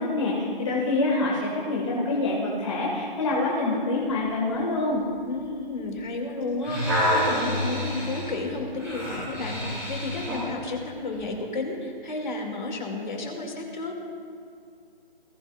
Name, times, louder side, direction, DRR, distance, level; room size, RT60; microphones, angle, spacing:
voice 1, 0.0-5.0, left 2 dB, 30° left, -4 dB, 1.9 m, -26 dB
voice 2, 5.3-14.0, left 2 dB, 55° left, 1 dB, 2.6 m, -32 dB
sound 1, 6.4-10.5 11.1-11.3, equal, 5° right, 2.8 m, -28 dB
20.0 x 15.0 x 2.5 m, 2.4 s
hypercardioid pair, 170°, 29 cm